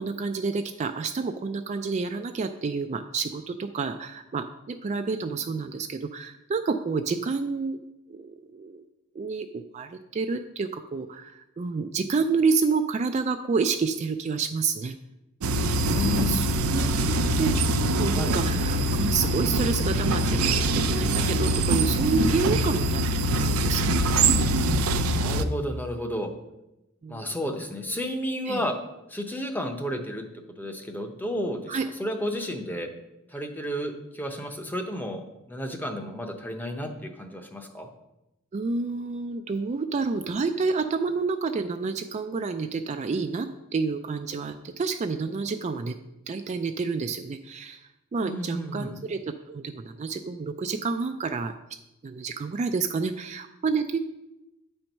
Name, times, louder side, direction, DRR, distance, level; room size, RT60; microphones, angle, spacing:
voice 1, 0.0-7.8 8.1-8.8 9.2-15.0 16.0-16.5 16.7-17.6 18.0-23.9 27.0-27.4 28.5-28.6 31.7-31.8 38.5-46.0 46.3-47.8 48.1-51.5 52.0-54.0, right 4 dB, 35° right, 7 dB, 0.3 m, -29 dB
sound 1, 15.4-25.5, right 1 dB, 85° right, 0.5 m, -24 dB
voice 2, 15.8-16.4 18.1-18.4 25.2-26.3 27.1-28.8 29.1-30.2 30.6-32.9 33.3-37.9 48.2-49.0, left 1 dB, 10° left, 5 dB, 0.7 m, -32 dB
8.6 x 4.5 x 5.3 m, 0.93 s
head